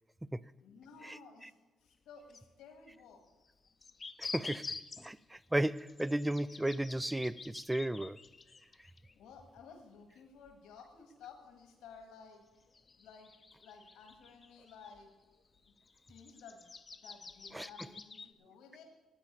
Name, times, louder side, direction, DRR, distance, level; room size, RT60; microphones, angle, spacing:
voice 1, 0.6-1.5 1.8-3.2 9.2-12.4 13.0-13.3 13.6-15.1 15.7-15.8 16.1-18.8, left 5 dB, 90° left, 1.8 m, -55 dB
sound 1, 1.9-2.0 2.3-2.4 3.5-9.6 10.0-10.1 10.5-10.6 12.0-12.1 12.6-15.0 15.5-18.3, left 4 dB, 35° left, 0.7 m, -48 dB
voice 2, 4.2-8.2 17.5-17.7, right 1 dB, 10° right, 0.4 m, -34 dB
10.0 x 8.8 x 8.5 m
cardioid pair, 90°, 0 cm